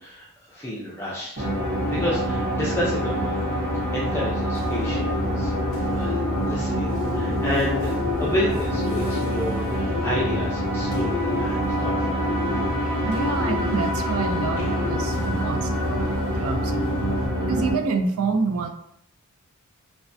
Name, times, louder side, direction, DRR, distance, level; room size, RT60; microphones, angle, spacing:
voice 1, 0.0-1.5 1.8-3.4 3.9-5.5 5.9-7.9 8.2-12.2, equal, 10° left, -7 dB, 0.5 m, -30 dB
sound 1, 1.4-17.7, equal, 30° right, 1.2 m, -25 dB
Bird, 4.5-17.3, left 4 dB, 65° left, 0.5 m, -35 dB
voice 2, 13.0-17.0 17.4-18.7, right 4 dB, 70° right, 6 dB, 0.3 m, -27 dB
3.1 x 2.2 x 2.6 m, 0.73 s
head